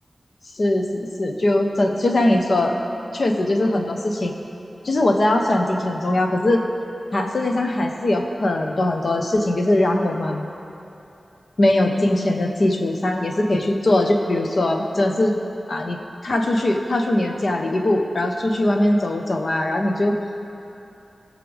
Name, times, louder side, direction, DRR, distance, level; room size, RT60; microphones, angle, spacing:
voice 1, 0.5-2.8 3.1-4.3 4.8-6.6 7.1-10.4 11.6-15.3 15.7-16.0 16.2-20.1, left 1 dB, 60° left, 3 dB, 1.0 m, -21 dB
19.0 x 6.7 x 3.5 m, 2.9 s
wide cardioid pair, 65°, 0 cm